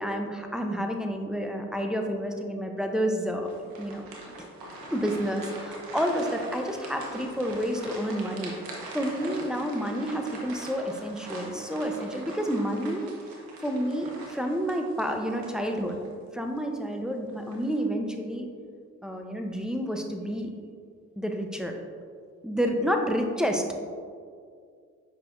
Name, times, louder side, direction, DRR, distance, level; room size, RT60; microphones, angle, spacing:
voice 1, 0.0-3.5 3.8-4.0 4.9-13.1 13.6-16.0 16.3-18.5 19.0-20.5 21.2-21.8 22.4-23.6, equal, ahead, 2 dB, 0.9 m, -29 dB
sound 1, 3.4-16.1 16.5-16.7 17.3-17.8, right 1 dB, 80° right, 1.1 m, -42 dB
8.0 x 5.4 x 2.7 m, 2.1 s
hypercardioid pair, 45°, 35 cm